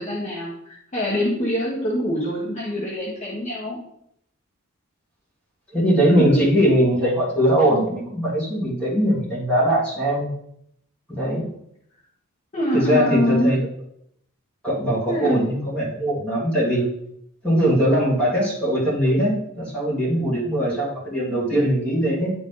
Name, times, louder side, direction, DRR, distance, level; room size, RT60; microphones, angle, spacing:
voice 1, 0.0-3.8 12.5-13.6 15.1-15.5, left 1 dB, 35° left, -6 dB, 1.4 m, -25 dB
voice 2, 5.7-10.3 11.1-11.5 12.7-13.6 14.6-16.9 17.4-22.3, equal, 5° left, -8 dB, 2.8 m, -21 dB
10.0 x 4.0 x 3.8 m, 0.73 s
head